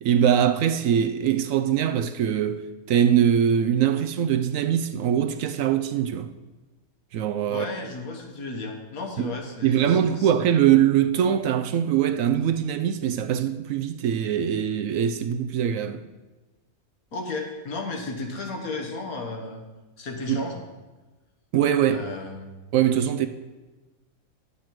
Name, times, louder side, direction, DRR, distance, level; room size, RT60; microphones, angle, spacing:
voice 1, 0.0-6.3 7.1-7.7 9.2-9.3 9.6-16.0 20.3-20.5 21.5-22.1 22.7-23.3, right 9 dB, 70° right, 0.9 m, -22 dB
voice 2, 7.5-10.3 17.1-19.7 20.0-20.6 21.9-22.6, left 3 dB, 70° left, 1.8 m, -34 dB
10.5 x 8.4 x 4.6 m
omnidirectional pair, 1.6 m